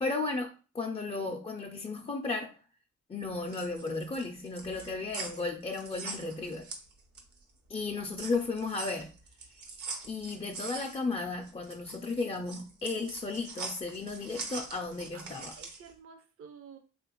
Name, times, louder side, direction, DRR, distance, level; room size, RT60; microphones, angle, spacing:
voice 1, 0.0-2.6 3.1-6.7 7.7-9.1 10.1-15.5, left 3 dB, 20° left, 2 dB, 0.4 m, -34 dB
sound 1, 3.3-7.4 7.8-15.9, right 4 dB, 75° right, 0.8 m, -43 dB
voice 2, 15.1-16.8, right 6 dB, 50° right, 6 dB, 0.5 m, -52 dB
3.3 x 2.4 x 2.9 m, 0.35 s
supercardioid pair, 55°, 30 cm